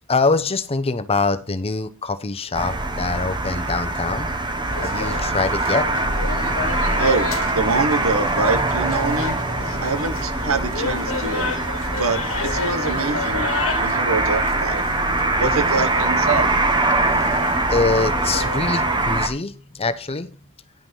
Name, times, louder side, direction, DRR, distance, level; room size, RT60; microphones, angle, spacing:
voice 1, 0.1-4.3 4.8-5.9 17.7-20.3, left 3 dB, 30° left, 0.7 m, -24 dB
sound 1, 2.5-19.3, right 2 dB, 20° right, 1.0 m, -23 dB
sound 2, 4.7-19.0, left 4 dB, 75° left, 1.4 m, -32 dB
voice 2, 7.0-9.4 9.8-11.5 12.0-13.5 13.8-14.8 15.4-16.6, right 3 dB, 90° right, 1.0 m, -24 dB
10.5 x 5.8 x 5.5 m
head